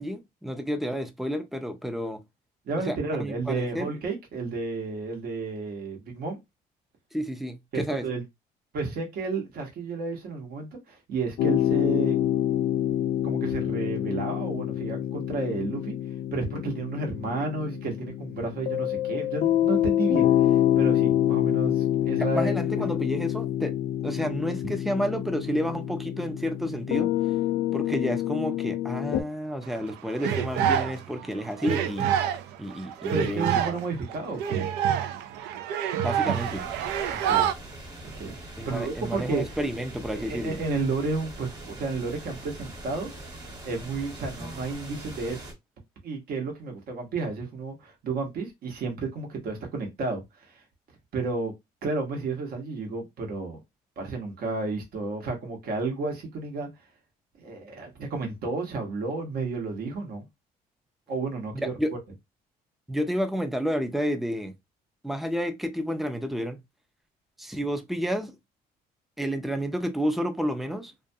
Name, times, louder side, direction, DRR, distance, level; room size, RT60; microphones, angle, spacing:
voice 1, 0.0-2.2 2.8-3.9 7.1-8.1 22.2-23.7 24.0-27.1 27.7-32.1 32.6-33.6 36.0-36.6 38.6-40.6 61.6-61.9 62.9-64.5 65.0-66.6 67.4-68.4 69.2-70.9, equal, ahead, 0.4 m, -30 dB
voice 2, 2.7-6.4 7.7-8.2 8.7-12.2 13.2-15.9 16.3-22.5 32.8-34.7 37.1-37.5 38.2-38.4 38.7-39.5 40.1-43.1 43.6-45.5 46.0-50.6 51.1-51.5 51.8-53.6 54.0-56.7 57.4-60.3 61.1-61.7, right 3 dB, 60° right, 1.0 m, -32 dB
sound 1, 11.4-29.2, left 12 dB, 70° left, 0.4 m, -26 dB
sound 2, 29.6-31.3 31.6-37.5, right 9 dB, 80° right, 0.4 m, -27 dB
sound 3, 36.3-45.5, right 1 dB, 25° right, 1.3 m, -42 dB
2.4 x 2.2 x 2.6 m
cardioid pair, 110°, 17 cm